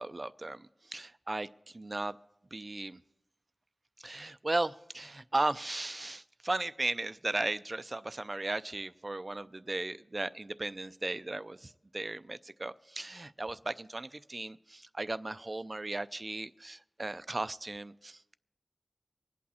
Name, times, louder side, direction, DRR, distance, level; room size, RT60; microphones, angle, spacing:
voice 1, 0.0-2.2 2.5-3.0 4.0-18.4, right 2 dB, 40° right, 14 dB, 0.4 m, -36 dB
25.0 x 8.6 x 4.2 m, 0.91 s
wide cardioid pair, 60°, 0 cm